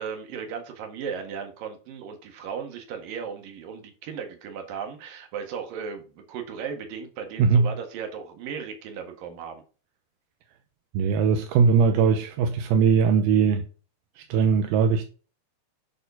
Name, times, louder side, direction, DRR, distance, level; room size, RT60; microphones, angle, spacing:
voice 1, 0.0-9.6, right 6 dB, 65° right, 3.4 m, -36 dB
voice 2, 7.4-7.7 10.9-13.6 14.3-15.1, right 6 dB, 85° right, 2.8 m, -20 dB
11.0 x 4.4 x 5.6 m
omnidirectional pair, 4.4 m